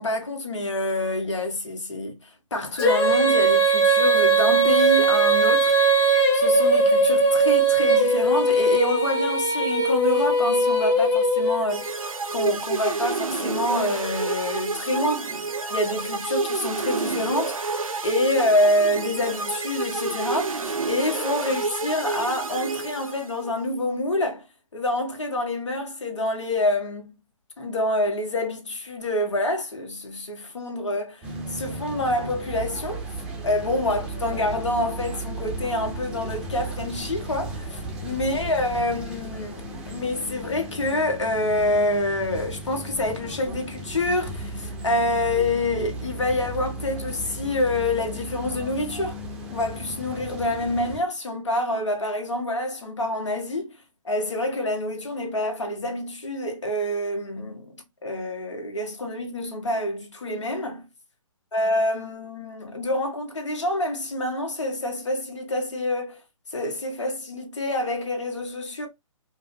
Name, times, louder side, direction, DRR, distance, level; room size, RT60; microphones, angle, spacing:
voice 1, 0.0-5.7 6.3-15.3 15.7-17.6 18.0-24.4 24.7-27.1 27.6-33.0 33.4-49.2 49.5-53.8 54.0-57.7 58.0-60.8 61.5-66.2 66.5-68.9, left 1 dB, 60° left, 1.4 m, -27 dB
Female singing, 2.8-11.9, right 3 dB, 10° left, 0.4 m, -20 dB
sound 1, 11.7-23.5, right 4 dB, 80° right, 0.7 m, -29 dB
sound 2, 31.2-51.0, right 2 dB, 5° right, 0.8 m, -35 dB
5.0 x 2.3 x 2.7 m
figure-of-eight pair, 135°, 17 cm